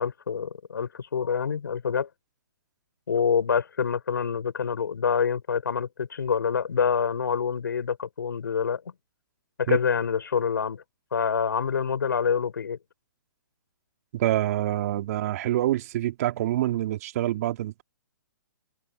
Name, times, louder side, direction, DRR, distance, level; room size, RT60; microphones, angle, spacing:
voice 1, 0.0-2.1 3.1-8.8 9.6-10.8 11.1-12.8, left 6 dB, 75° left, 5.0 m, -26 dB
voice 2, 14.1-17.8, right 14 dB, 50° right, 2.2 m, -26 dB
hypercardioid pair, 130°, 11 cm